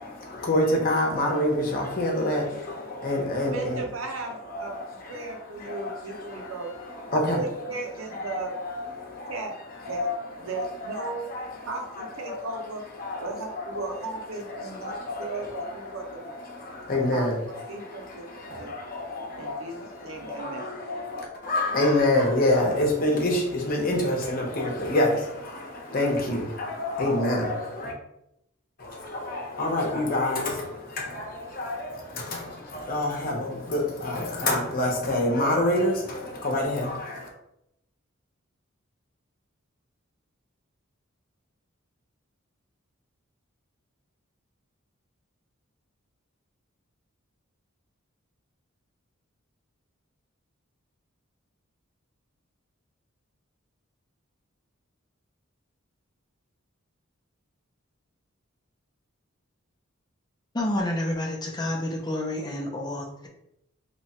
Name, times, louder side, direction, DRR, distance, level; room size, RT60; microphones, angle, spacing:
voice 1, 0.0-3.8 4.5-5.3 5.6-6.5 6.9-7.4 8.1-8.4 8.6-9.3 9.9-10.1 10.6-11.0 11.3-11.5 12.0-12.5 13.0-13.8 14.5-15.7 16.2-17.4 17.8-27.9 28.8-37.3, left 1 dB, 45° left, 0 dB, 0.9 m, -27 dB
voice 2, 3.4-4.7 5.1-6.7 7.1-8.5 9.3-9.6 9.8-10.1 10.4-11.3 11.7-12.8 13.2-16.4 17.1-18.7 19.3-20.8, right 3 dB, 75° right, 2 dB, 0.8 m, -36 dB
voice 3, 60.5-63.3, left 1 dB, 20° left, 0 dB, 0.6 m, -29 dB
3.0 x 2.4 x 4.2 m, 0.79 s
head